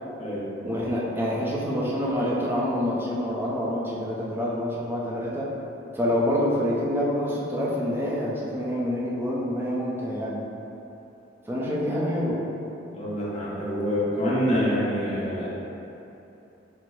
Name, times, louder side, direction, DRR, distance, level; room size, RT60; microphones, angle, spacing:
voice 1, 0.6-5.5 5.9-10.4 11.5-12.4, equal, 10° right, -5 dB, 0.5 m, -27 dB
voice 2, 12.9-15.5, equal, 35° left, -7 dB, 0.8 m, -26 dB
5.9 x 2.0 x 3.1 m, 2.9 s
head